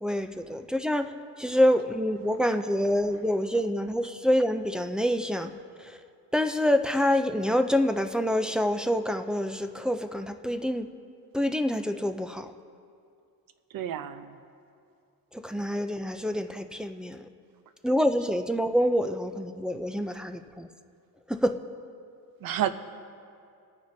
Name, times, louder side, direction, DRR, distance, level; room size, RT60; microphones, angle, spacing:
voice 1, 0.0-1.1 1.4-5.5 5.8-6.0 6.3-10.9 11.3-12.5 15.3-17.3 17.8-20.7 21.3-21.6, equal, ahead, 6 dB, 0.3 m, -26 dB
voice 2, 13.7-14.4 22.4-22.7, right 11 dB, 65° right, 11 dB, 0.7 m, -30 dB
27.5 x 9.4 x 2.7 m, 2.4 s
cardioid pair, 140°, 37 cm